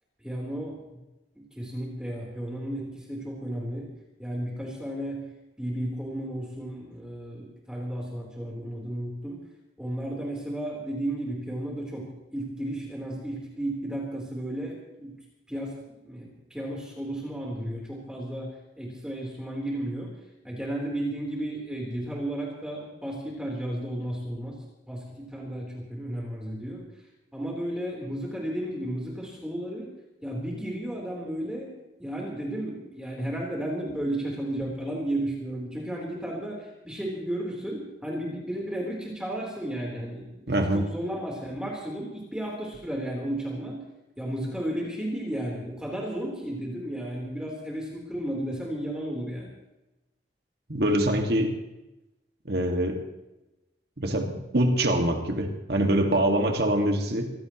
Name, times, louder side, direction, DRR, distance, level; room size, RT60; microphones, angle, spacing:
voice 1, 0.2-1.0 1.4-3.9 4.2-5.3 5.6-9.4 9.8-15.1 15.5-18.5 18.8-20.2 20.4-26.9 27.3-29.9 30.2-31.7 32.0-40.5 40.7-43.8 44.2-49.5, right 1 dB, 5° right, -3 dB, 3.7 m, -33 dB
voice 2, 40.5-40.8 50.7-51.6 52.5-53.0 54.0-57.3, right 1 dB, 60° right, 3 dB, 2.0 m, -24 dB
24.5 x 17.0 x 3.1 m, 0.98 s
head